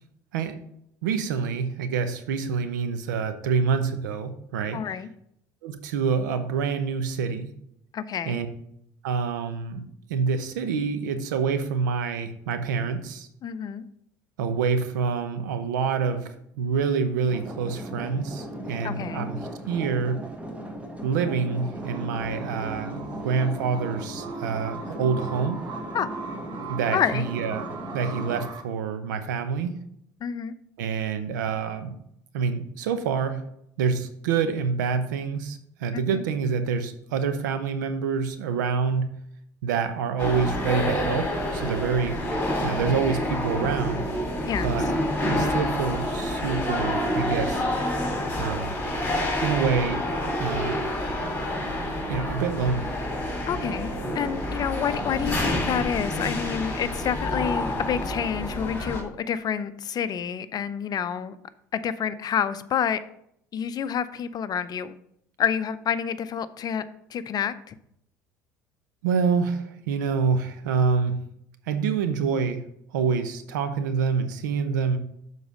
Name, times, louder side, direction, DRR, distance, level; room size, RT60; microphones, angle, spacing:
voice 1, 1.0-4.8 5.6-7.5 8.3-8.5 9.0-9.8 10.1-13.3 14.4-19.4 19.7-20.2 21.0-25.6 26.7-27.6 27.9-29.8 30.8-32.0 32.3-33.4 33.8-39.1 39.6-42.2 42.6-44.0 44.6-44.9 45.2-47.6 48.4-48.7 49.4-50.0 50.4-50.9 52.1-52.9 69.0-71.1 71.7-72.6 72.9-75.0, right 5 dB, 80° right, 0.8 m, -27 dB
voice 2, 4.7-5.1 7.9-8.4 13.4-13.8 18.8-19.3 25.9-26.2 26.9-27.3 30.2-30.5 35.9-36.2 44.5-44.7 53.5-61.4 61.7-63.0 63.5-65.0 65.4-66.9 67.1-67.7, left 8 dB, 45° left, 0.5 m, -28 dB
sound 1, 17.3-28.5, right 1 dB, 15° right, 1.4 m, -37 dB
sound 2, 21.7-28.6, right 4 dB, 45° right, 1.2 m, -39 dB
sound 3, 40.2-59.0, left 1 dB, 20° left, 2.6 m, -28 dB
7.0 x 4.1 x 6.1 m
hypercardioid pair, 70°, 10 cm